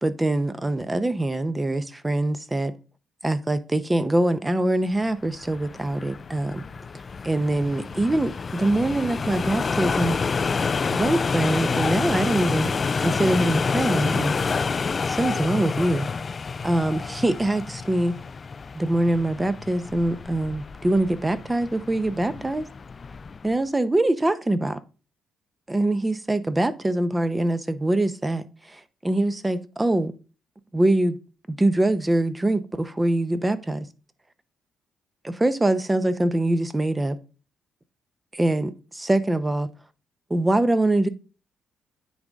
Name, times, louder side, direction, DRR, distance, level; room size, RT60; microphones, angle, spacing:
voice 1, 0.0-2.7 3.2-6.6 7.2-10.2 10.9-12.7 13.0-14.3 15.1-16.1 16.6-18.2 18.7-22.7 23.4-24.8 25.7-30.1 30.7-31.2 31.5-33.9 35.2-37.2 38.4-39.7 40.3-41.1, right 1 dB, 15° right, 0.8 m, -23 dB
sound 1, 5.2-23.5, left 5 dB, 35° left, 0.3 m, -28 dB
9.5 x 3.9 x 3.6 m
cardioid pair, 90°, 0 cm